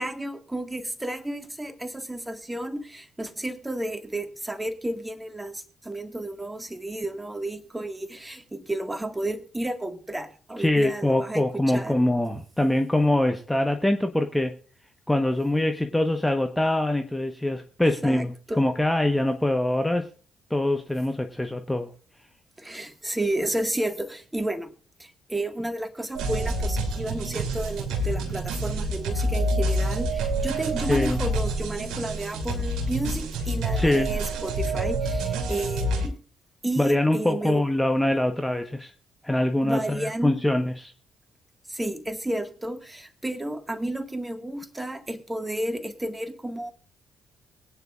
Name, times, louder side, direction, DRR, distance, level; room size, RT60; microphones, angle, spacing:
voice 1, 0.0-12.0 18.0-18.6 22.6-24.7 25.0-36.2 36.6-37.6 39.6-40.3 41.7-46.7, right 1 dB, 10° right, 9 dB, 1.8 m, -32 dB
voice 2, 10.6-14.5 15.1-20.1 20.5-21.9 30.9-31.2 33.7-34.2 36.8-38.9 39.2-40.9, left 1 dB, 5° left, 5 dB, 1.2 m, -24 dB
sound 1, 26.1-36.1, right 1 dB, 60° right, 3.1 m, -27 dB
22.5 x 9.5 x 2.5 m, 0.40 s
figure-of-eight pair, 45°, 0 cm